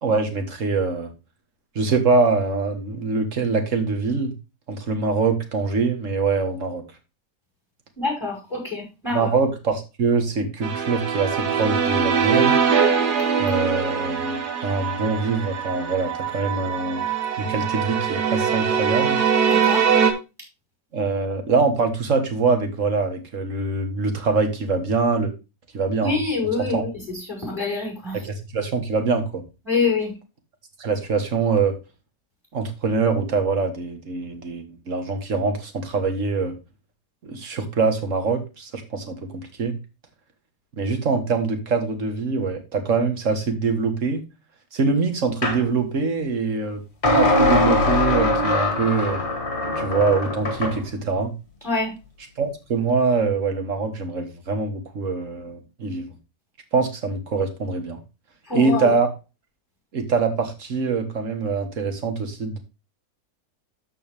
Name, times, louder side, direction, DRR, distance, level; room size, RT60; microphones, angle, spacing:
voice 1, 0.0-1.1 1.8-4.3 4.7-6.8 9.1-12.6 13.4-17.0 17.4-19.2 20.9-25.3 25.7-26.2 26.6-26.8 28.2-29.5 30.8-31.8 32.5-36.6 37.2-39.8 40.8-44.2 44.7-46.8 47.1-49.2 49.8-51.3 52.4-56.2 56.7-58.0 58.5-59.1 59.9-62.6, right 4 dB, 45° right, 6 dB, 1.8 m, -24 dB
voice 2, 8.0-9.3 19.4-19.9 26.0-28.2 29.6-30.1 51.6-51.9 58.4-59.0, left 4 dB, ahead, -2 dB, 5.6 m, -26 dB
sound 1, 10.6-20.1, right 7 dB, 65° right, 1.7 m, -22 dB
sound 2, 45.4-45.6 47.0-50.8, left 2 dB, 40° left, 2.3 m, -21 dB
13.5 x 4.7 x 3.4 m, 0.28 s
omnidirectional pair, 1.9 m